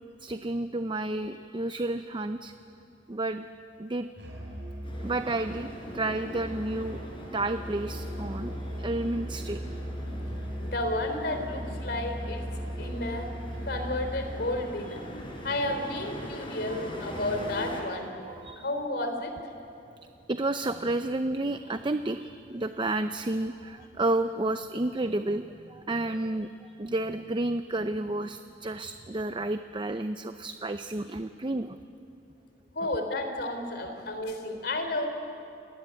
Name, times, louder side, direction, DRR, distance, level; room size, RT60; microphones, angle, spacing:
voice 1, 0.2-2.5 3.1-3.5 3.8-4.1 5.0-7.0 7.3-9.6 13.1-13.2 16.7-17.5 18.2-18.7 20.3-31.8, right 2 dB, 25° right, 9 dB, 0.6 m, -31 dB
Musical instrument, 4.2-14.5, equal, 80° right, 6.5 m, -38 dB
sound 1, 4.8-17.8, equal, 30° left, 4.8 m, -42 dB
voice 2, 10.6-12.4 12.8-13.3 13.7-15.0 15.4-18.2 18.6-19.3 32.8-35.1, left 1 dB, 65° left, 6 dB, 3.5 m, -32 dB
28.0 x 19.0 x 9.8 m, 2.6 s
head